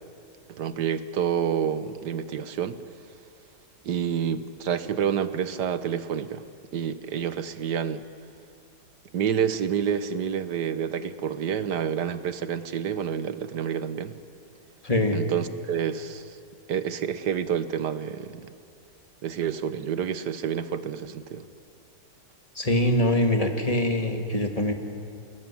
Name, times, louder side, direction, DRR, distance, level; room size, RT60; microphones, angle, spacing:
voice 1, 0.5-2.8 3.8-6.5 6.7-8.0 9.1-14.2 15.1-16.4 16.7-18.5 19.2-21.5, right 8 dB, 70° right, 12 dB, 1.6 m, -28 dB
voice 2, 14.8-15.2 22.6-24.7, left 1 dB, 20° left, 4 dB, 2.2 m, -23 dB
29.0 x 20.0 x 10.0 m, 2.4 s
omnidirectional pair, 1.9 m